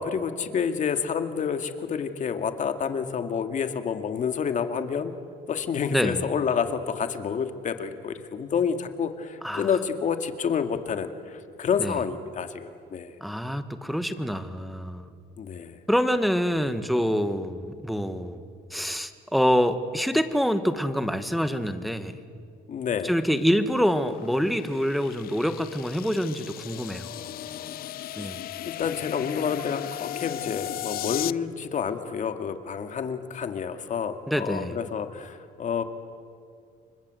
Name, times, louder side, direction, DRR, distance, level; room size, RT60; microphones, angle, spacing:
voice 1, 0.0-5.1 5.5-13.1 15.4-15.8 22.7-23.1 27.0-27.9 28.2-28.3 28.6-35.8, left 6 dB, 45° left, 7 dB, 2.2 m, -29 dB
voice 2, 5.9-6.2 9.4-9.7 11.8-12.0 13.2-15.1 15.9-18.4 18.7-22.2 23.0-27.1 28.2-28.4 34.3-34.7, equal, ahead, 9 dB, 1.6 m, -26 dB
sound 1, 23.4-31.3, left 13 dB, 65° left, 0.6 m, -37 dB
29.5 x 24.5 x 7.8 m, 2.2 s
cardioid pair, 110°, 17 cm